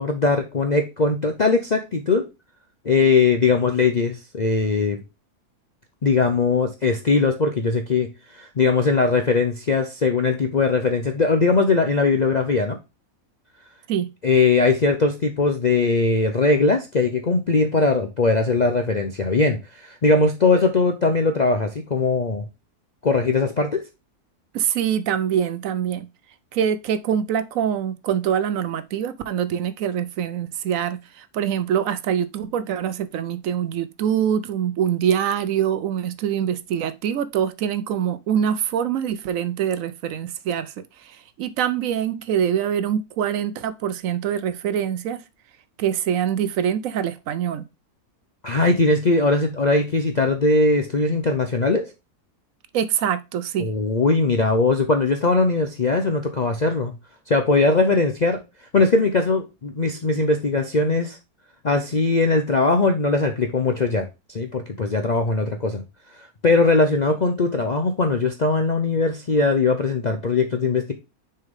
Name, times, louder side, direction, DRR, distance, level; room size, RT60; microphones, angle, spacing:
voice 1, 0.0-2.3 2.8-5.0 6.0-12.8 14.2-22.5 23.0-23.8 48.4-51.9 53.6-56.9 57.3-58.4 58.7-61.2 61.6-64.1 64.3-65.8 66.1-70.9, left 3 dB, 50° left, 0.5 m, -20 dB
voice 2, 24.5-26.1 26.5-40.7 41.0-45.2 45.8-47.7 52.7-53.7, right 9 dB, 70° right, 0.9 m, -24 dB
6.4 x 4.5 x 3.6 m
omnidirectional pair, 1.6 m